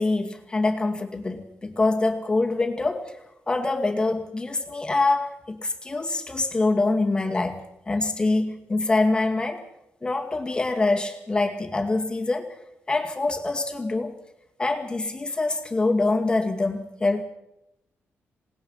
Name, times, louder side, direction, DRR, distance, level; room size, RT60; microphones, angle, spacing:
voice 1, 0.0-3.2 3.5-9.6 10.0-12.6 12.9-14.2 14.6-17.2, left 3 dB, 20° left, 4 dB, 2.2 m, -25 dB
27.5 x 19.5 x 5.7 m, 0.87 s
wide cardioid pair, 145°, 5 cm